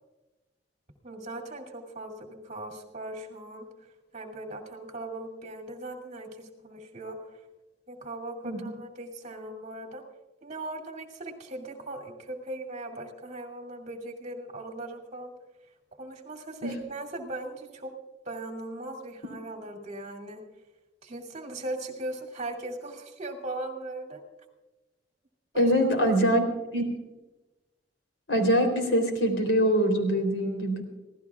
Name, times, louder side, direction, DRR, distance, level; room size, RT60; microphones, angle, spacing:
voice 1, 1.0-3.7 4.1-7.2 7.9-10.0 10.4-15.3 16.0-17.9 18.2-20.4 21.0-24.2 25.5-25.7, right 2 dB, 40° right, 2 dB, 2.4 m, -39 dB
voice 2, 25.6-26.4 26.7-26.8 28.3-30.8, equal, 85° left, 4 dB, 3.5 m, -23 dB
25.0 x 16.5 x 2.4 m, 1.1 s
head